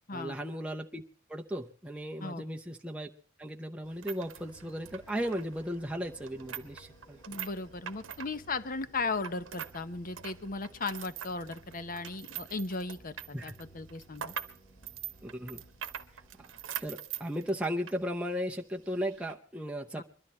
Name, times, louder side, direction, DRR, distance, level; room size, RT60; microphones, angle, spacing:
voice 1, 0.1-1.0 1.3-3.1 3.4-7.2 13.3-13.5 15.2-15.6 16.4-16.5 16.8-20.0, equal, 5° right, 1 dB, 0.7 m, -36 dB
Gate's Chain Rattles, 3.8-9.8 10.1-18.0 18.3-18.4 19.1-19.3, right 9 dB, 75° right, 0.9 m, -43 dB
sound 1, 4.4-16.9, right 1 dB, 25° left, 2.2 m, -57 dB
voice 2, 7.3-14.3 20.0-20.1, left 3 dB, 45° left, 12 dB, 0.8 m, -36 dB
22.0 x 12.5 x 4.3 m, 0.42 s
head